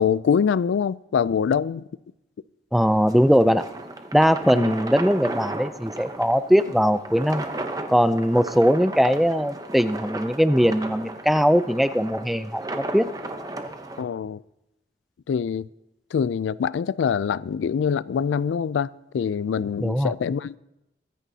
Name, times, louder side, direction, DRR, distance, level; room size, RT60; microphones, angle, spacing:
voice 1, 0.0-1.8 4.5-4.7 14.0-14.4 15.3-15.7 16.1-20.6, left 7 dB, 85° left, 0.3 m, -24 dB
voice 2, 2.7-3.7 4.1-7.4 7.9-13.1 19.8-20.1, equal, ahead, 0.3 m, -20 dB
sound 1, 2.8-14.0, right 2 dB, 20° right, 0.8 m, -35 dB
23.0 x 10.0 x 2.8 m
head